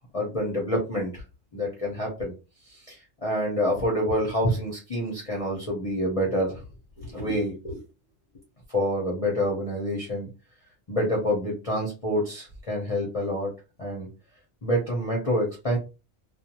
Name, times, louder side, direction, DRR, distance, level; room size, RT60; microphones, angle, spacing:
voice 1, 0.1-1.2 1.5-2.3 2.9-6.6 7.0-7.8 8.7-10.3 10.9-13.5 13.8-14.1 14.6-15.8, equal, 30° left, -3 dB, 0.8 m, -27 dB
2.5 x 2.3 x 2.9 m, 0.29 s
omnidirectional pair, 1.3 m